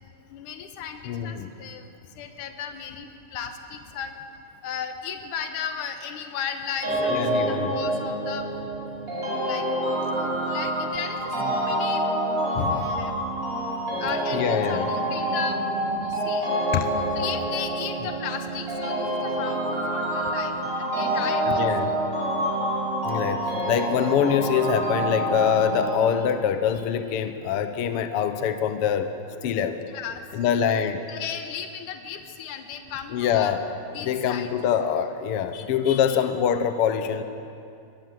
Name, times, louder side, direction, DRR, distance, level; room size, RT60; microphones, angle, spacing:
voice 1, 0.3-4.1 4.6-8.5 9.3-9.7 10.5-12.0 12.6-13.1 13.4-13.6 14.0-16.5 17.2-21.6 29.9-30.6 31.1-33.5 33.9-34.5 35.5-36.2, left 7 dB, 90° left, 6 dB, 2.7 m, -35 dB
voice 2, 1.0-1.5 7.1-7.8 11.4-11.5 12.6-12.9 14.3-14.9 16.7-16.9 21.4-21.9 23.0-29.1 29.4-29.8 30.3-31.0 33.1-33.6 34.0-37.2, left 8 dB, 65° left, 9 dB, 1.6 m, -24 dB
sound 1, 6.8-26.0, right 1 dB, 25° right, 7.9 m, -27 dB
23.5 x 20.5 x 7.7 m, 2.5 s
omnidirectional pair, 3.5 m